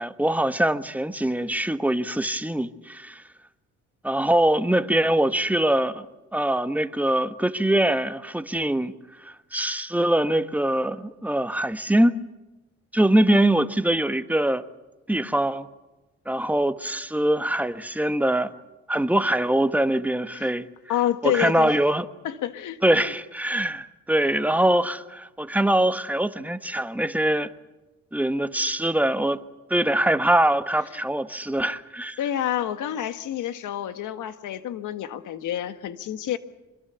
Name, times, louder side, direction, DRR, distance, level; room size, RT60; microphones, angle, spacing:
voice 1, 0.0-3.2 4.0-6.1 6.3-8.9 9.2-12.1 12.9-14.6 15.1-15.7 16.3-18.5 18.9-20.7 21.2-22.0 22.8-27.5 28.1-29.4 29.7-32.2, right 1 dB, 5° right, 1.3 m, -23 dB
voice 2, 20.9-21.7 22.2-23.1 32.2-36.4, left 11 dB, 80° left, 1.6 m, -28 dB
26.0 x 22.0 x 7.1 m
cardioid pair, 90°, 30 cm